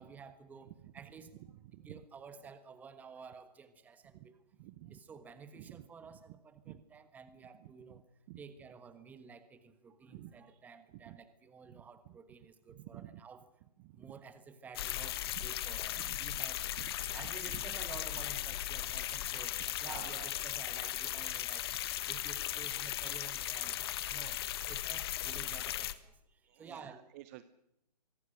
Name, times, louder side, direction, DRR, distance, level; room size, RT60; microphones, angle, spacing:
voice 1, 0.0-1.3 1.8-4.4 4.9-8.0 8.4-13.4 14.0-21.7 22.1-23.8 24.1-26.1 26.5-27.0, right 5 dB, 5° right, 12 dB, 1.3 m, -52 dB
voice 2, 4.6-5.0 5.6-5.8 6.7-6.8 8.3-8.4 10.1-10.3 11.1-11.2 11.7-11.8 12.7-13.2 13.8-14.1 15.4-15.5 16.0-16.4 16.8-17.1 17.5-17.6 19.8-20.3 26.5-27.4, right 15 dB, 25° right, 14 dB, 0.8 m, -50 dB
sound 1, 14.7-25.9, left 12 dB, 35° left, 1.5 m, -37 dB
24.5 x 23.5 x 6.5 m, 0.82 s
hypercardioid pair, 150°, 21 cm